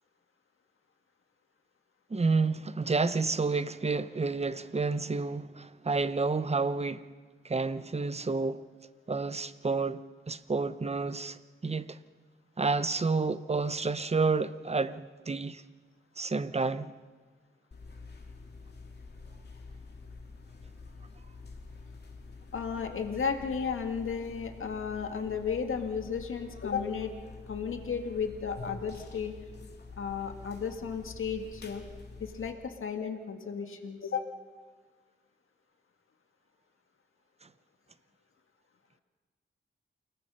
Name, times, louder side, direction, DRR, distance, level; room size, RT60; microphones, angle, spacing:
voice 1, 2.1-7.1 7.4-8.6 9.1-10.0 10.3-12.0 12.6-15.6 16.2-16.9, right 4 dB, 30° right, 0.9 m, -30 dB
sound 1, 17.7-32.5, left 3 dB, 55° left, 2.7 m, -47 dB
voice 2, 22.5-27.1 27.5-29.3 30.0-31.9 32.2-34.3, left 6 dB, 80° left, 2.0 m, -34 dB
28.5 x 18.5 x 5.7 m
cardioid pair, 75°, 21 cm